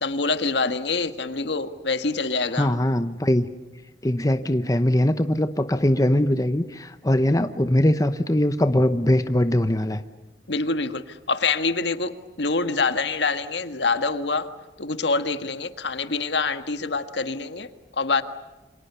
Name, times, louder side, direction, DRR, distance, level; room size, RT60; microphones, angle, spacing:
voice 1, 0.0-2.7 10.5-14.5 14.8-17.7 18.0-18.2, left 4 dB, 75° left, 9 dB, 1.7 m, -25 dB
voice 2, 2.5-3.4 4.0-10.0, left 1 dB, 20° left, 9 dB, 0.9 m, -21 dB
29.0 x 26.5 x 6.9 m, 1.2 s
head